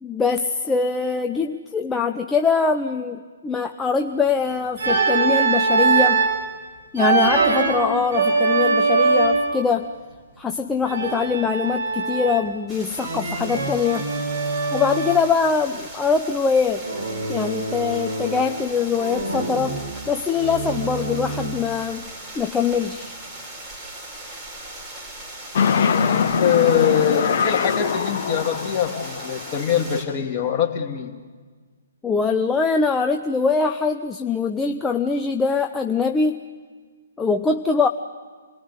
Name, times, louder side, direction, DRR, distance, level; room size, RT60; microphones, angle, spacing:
voice 1, 0.0-6.2 6.9-9.9 10.4-14.1 14.7-16.8 17.3-19.8 20.1-22.1 22.3-23.1 32.0-36.4 37.2-37.9, left 5 dB, 10° left, 4 dB, 0.8 m, -23 dB
Organ, 4.8-6.4 7.0-9.6 10.9-12.6 13.0-15.3 16.8-18.6 19.0-21.7, right 4 dB, 60° right, 5.3 m, -23 dB
sound 1, 12.7-30.0, right 1 dB, 10° right, 5.4 m, -39 dB
sound 2, 25.5-29.8, left 6 dB, 45° left, 1.5 m, -23 dB
voice 2, 26.0-31.1, left 8 dB, 30° left, 2 dB, 2.7 m, -23 dB
28.0 x 19.0 x 9.7 m, 1.5 s
figure-of-eight pair, 125°, 0 cm